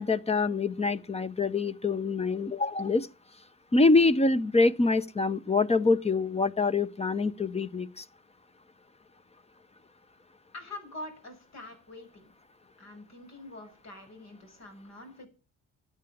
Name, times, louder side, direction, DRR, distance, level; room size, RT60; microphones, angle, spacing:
voice 1, 0.0-3.1 3.7-8.0, left 3 dB, 20° left, 0.8 m, -25 dB
voice 2, 10.5-12.3 12.8-15.3, left 2 dB, 60° left, 6.6 m, -45 dB
13.0 x 8.8 x 7.2 m
cardioid pair, 90°, 30 cm